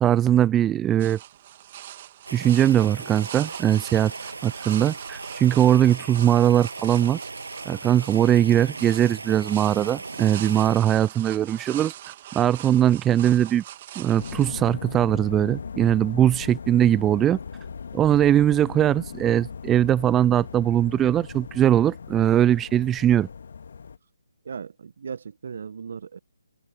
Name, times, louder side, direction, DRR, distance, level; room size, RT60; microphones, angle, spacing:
voice 1, 0.0-1.2 2.3-4.1 4.4-7.2 7.7-11.9 12.3-13.6 14.0-17.4 17.9-23.3, right 11 dB, 10° right, 0.6 m, -20 dB
sound 1, 1.0-14.5, right 12 dB, 30° right, 2.8 m, -42 dB
sound 2, 2.3-10.8, right 3 dB, 70° right, 7.7 m, -38 dB
sound 3, 14.2-24.0, left 6 dB, 50° left, 2.0 m, -38 dB
voice 2, 24.4-26.2, right 6 dB, 50° right, 1.3 m, -37 dB
figure-of-eight pair, 145°, 0 cm